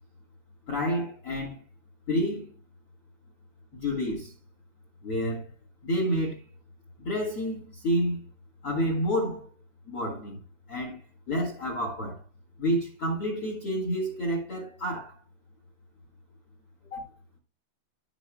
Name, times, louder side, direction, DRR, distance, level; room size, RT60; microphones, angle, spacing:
voice 1, 0.7-1.6 2.1-2.5 3.7-4.3 5.0-5.5 5.8-6.4 7.0-8.2 8.6-9.5 9.9-10.4 10.7-11.0 11.3-12.2 12.6-15.1 16.9-17.0, equal, 55° left, 1.6 m, -29 dB
15.0 x 5.8 x 2.2 m
omnidirectional pair, 5.1 m